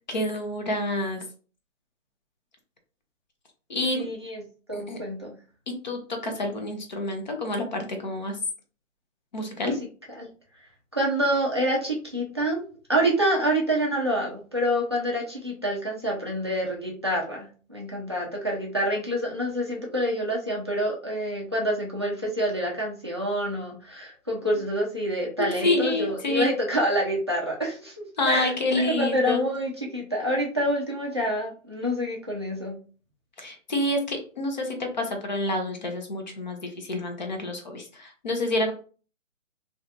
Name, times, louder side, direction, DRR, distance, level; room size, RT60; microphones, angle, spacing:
voice 1, 0.1-1.2 3.7-4.1 4.7-5.0 5.8-8.4 9.3-9.7 25.4-26.5 28.2-29.4 33.4-38.7, left 1 dB, 35° left, 4 dB, 0.7 m, -28 dB
voice 2, 3.9-4.4 4.7-5.3 9.6-9.7 10.2-10.3 10.9-12.6 12.9-32.8, equal, 20° right, -3 dB, 0.4 m, -27 dB
2.7 x 2.4 x 2.4 m, 0.39 s
figure-of-eight pair, 150°, 39 cm